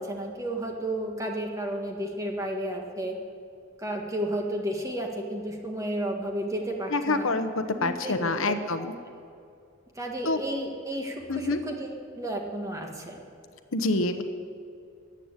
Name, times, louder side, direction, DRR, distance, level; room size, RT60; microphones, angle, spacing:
voice 1, 0.0-3.2 3.8-7.3 7.8-8.9 9.9-13.2, right 1 dB, 15° right, 1 dB, 1.6 m, -32 dB
voice 2, 6.9-8.9 10.2-10.4 11.3-11.6 13.7-14.2, left 2 dB, 80° left, 8 dB, 1.0 m, -26 dB
14.0 x 8.8 x 9.8 m, 2.5 s
head